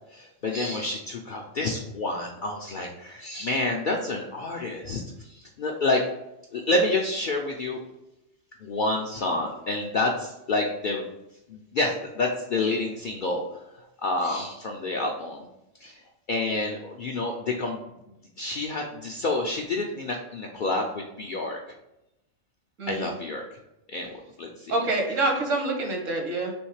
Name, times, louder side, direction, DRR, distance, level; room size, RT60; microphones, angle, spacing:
voice 1, 0.1-6.0 6.5-7.8 8.6-11.1 11.5-13.4 14.0-15.5 15.8-16.0 16.3-17.8 18.4-21.6 22.9-23.4 23.9-24.1 24.4-24.7, left 2 dB, 60° left, 0 dB, 0.5 m, -28 dB
voice 2, 22.8-23.1 24.7-26.5, right 2 dB, 75° right, 1 dB, 1.4 m, -26 dB
3.5 x 3.1 x 4.6 m, 0.88 s
omnidirectional pair, 1.3 m